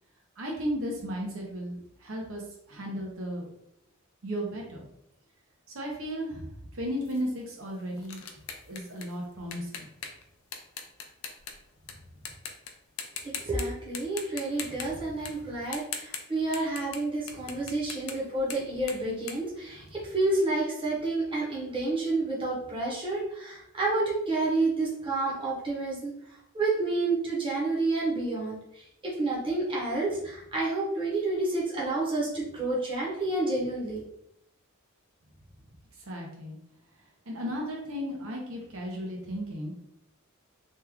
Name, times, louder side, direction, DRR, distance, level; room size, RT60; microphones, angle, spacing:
voice 1, 0.4-2.4 2.7-3.5 4.2-4.9 5.7-8.2 8.7-9.9 36.0-36.5 37.3-39.7, equal, 70° right, -1 dB, 0.8 m, -35 dB
sound 1, 7.0-11.9 12.3-12.7 13.0-13.6 13.9-20.3, left 7 dB, 75° left, 0.5 m, -41 dB
voice 2, 13.2-26.1 26.5-34.0, right 2 dB, 25° right, -5 dB, 0.9 m, -29 dB
3.0 x 2.3 x 3.4 m, 0.77 s
head